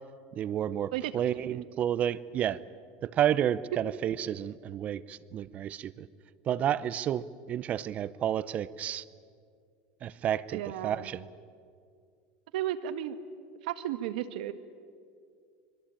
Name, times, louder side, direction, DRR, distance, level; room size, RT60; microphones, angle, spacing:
voice 1, 0.3-2.6 3.0-6.1 6.5-9.0 10.0-11.3, right 10 dB, 30° right, 17 dB, 0.7 m, -31 dB
voice 2, 10.5-11.1 12.5-13.2 13.6-14.5, right 12 dB, 90° right, 10 dB, 1.5 m, -33 dB
25.0 x 22.0 x 8.8 m, 2.2 s
supercardioid pair, 150°, 4 cm